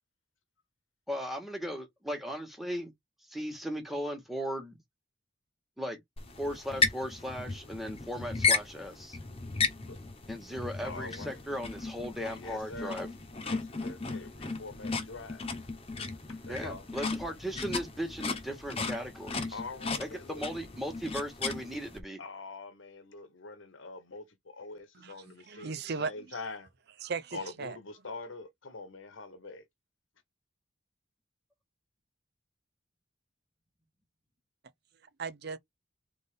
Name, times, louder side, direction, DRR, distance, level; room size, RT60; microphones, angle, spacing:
voice 1, 1.1-2.9 3.3-4.8 5.8-6.0 6.4-9.2 10.3-13.1 16.5-19.6 20.0-22.2, equal, ahead, 1.6 m, -37 dB
sound 1, 6.2-22.0, left 4 dB, 30° left, 1.0 m, -35 dB
voice 2, 10.8-11.4 12.2-13.0 13.4-15.5 16.3-16.9 19.5-20.5 22.2-26.7 27.3-29.6, left 3 dB, 80° left, 1.2 m, -44 dB
voice 3, 25.5-26.1 27.0-27.8 35.2-35.6, right 4 dB, 55° right, 0.6 m, -36 dB
3.8 x 3.6 x 3.7 m
head